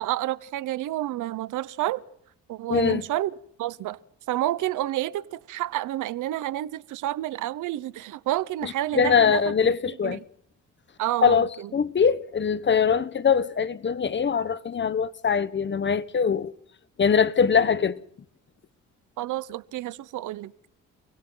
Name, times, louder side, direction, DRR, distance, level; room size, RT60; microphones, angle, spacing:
voice 1, 0.0-2.0 2.5-3.3 3.6-4.0 4.3-9.5 10.0-10.2 11.0-11.7 19.2-20.5, right 14 dB, 80° right, 1.0 m, -29 dB
voice 2, 2.7-3.0 8.6-10.2 11.2-16.5 17.0-18.0, left 6 dB, 40° left, 1.2 m, -22 dB
30.0 x 22.0 x 4.0 m
cardioid pair, 90°, 30 cm